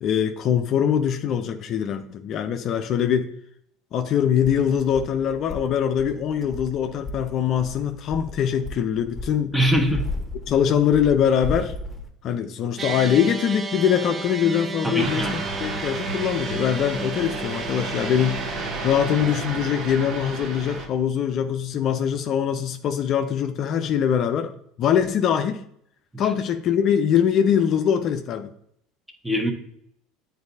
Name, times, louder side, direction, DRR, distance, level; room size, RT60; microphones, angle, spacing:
voice 1, 0.0-3.3 3.9-9.5 10.5-11.7 12.2-24.5 24.8-25.6 26.2-28.5, left 8 dB, 50° left, 7 dB, 0.5 m, -23 dB
sound 1, 4.4-12.1, left 2 dB, 15° left, 1.3 m, -35 dB
voice 2, 9.5-10.0 14.8-15.3 26.1-26.2 29.2-29.5, equal, 10° right, 4 dB, 1.2 m, -22 dB
sound 2, 12.8-19.4, right 4 dB, 25° right, 0.5 m, -33 dB
sound 3, 15.0-20.9, right 3 dB, 45° right, 1.3 m, -32 dB
9.5 x 4.0 x 2.7 m, 0.69 s
hypercardioid pair, 75°, 0 cm